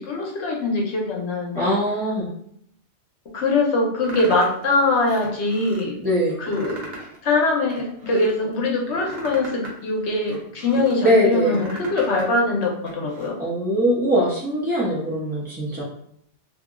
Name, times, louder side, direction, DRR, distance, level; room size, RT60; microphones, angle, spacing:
voice 1, 0.0-1.7 3.3-6.0 6.4-6.8 7.2-13.4, left 2 dB, 70° left, -1 dB, 1.0 m, -22 dB
voice 2, 1.5-2.3 6.0-6.4 11.0-11.6 13.4-15.8, equal, 10° right, -8 dB, 0.4 m, -21 dB
sound 1, 4.0-4.6 5.1-5.8 6.3-7.2 7.5-8.3 8.8-10.9 11.3-12.3 12.6-13.3, right 1 dB, 60° right, 0.9 m, -38 dB
2.8 x 2.7 x 2.4 m, 0.67 s
omnidirectional pair, 1.2 m